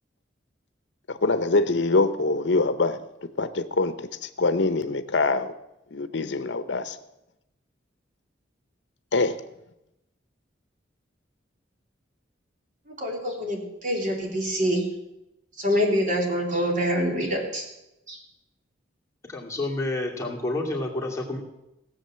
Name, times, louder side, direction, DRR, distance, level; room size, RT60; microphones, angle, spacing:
voice 1, 1.1-3.0 3.4-5.5 5.9-7.0 9.1-9.4, left 3 dB, 70° left, 11 dB, 0.8 m, -24 dB
voice 2, 12.9-14.9 15.6-17.6 18.1-18.2, equal, 45° right, 0 dB, 3.2 m, -25 dB
voice 3, 19.3-21.4, left 2 dB, 15° left, -2 dB, 2.4 m, -29 dB
17.0 x 7.6 x 7.5 m, 0.90 s
head